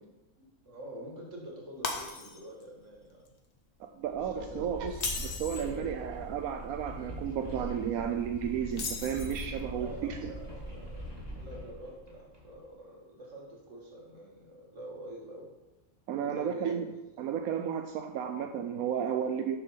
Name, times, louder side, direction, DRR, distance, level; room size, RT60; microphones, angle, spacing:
voice 1, 0.4-3.3 4.1-4.7 9.8-11.1 11.4-15.5 16.2-16.9, right 1 dB, 55° right, -2 dB, 2.3 m, -46 dB
Shatter, 1.8-2.6 3.0-3.3 4.9-5.7 8.7-9.6, left 4 dB, 50° left, 1.3 m, -36 dB
voice 2, 3.8-4.9 5.2-10.4 16.1-16.9 17.2-19.6, right 8 dB, 90° right, 5 dB, 1.1 m, -33 dB
sound 1, 4.0-12.6, equal, 15° right, 2.6 m, -42 dB
7.3 x 6.5 x 5.8 m, 1.0 s
omnidirectional pair, 1.5 m